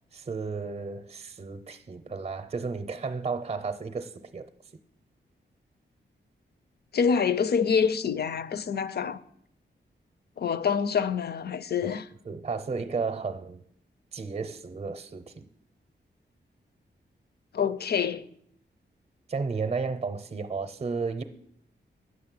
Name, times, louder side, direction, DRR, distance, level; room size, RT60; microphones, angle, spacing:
voice 1, 0.1-4.5 11.8-11.9 12.2-13.6 14.1-15.5 19.3-21.2, right 4 dB, 35° right, 0.6 m, -33 dB
voice 2, 6.9-9.2 10.4-12.1 17.5-18.2, left 6 dB, 60° left, 0.5 m, -26 dB
9.5 x 6.5 x 7.6 m
wide cardioid pair, 165°, 19 cm